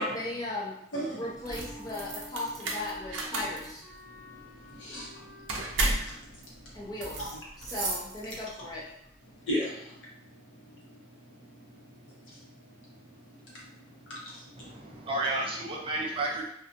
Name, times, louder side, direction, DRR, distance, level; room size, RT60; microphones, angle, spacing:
voice 1, 0.0-0.7 1.1-3.8 6.7-8.9, left 2 dB, 20° left, -5 dB, 0.5 m, -37 dB
Wind instrument woodwind instrument, 0.9-5.8, left 1 dB, 5° left, 0.9 m, -49 dB
sound 1, 1.4-8.7, right 2 dB, 80° right, 0.5 m, -34 dB
voice 2, 4.1-6.9 7.2-7.3 7.6-7.7 9.3-15.1, equal, 75° left, -5 dB, 0.9 m, -41 dB
voice 3, 14.6-16.4, right 2 dB, 30° right, -1 dB, 0.4 m, -32 dB
2.5 x 2.4 x 2.5 m, 0.73 s
head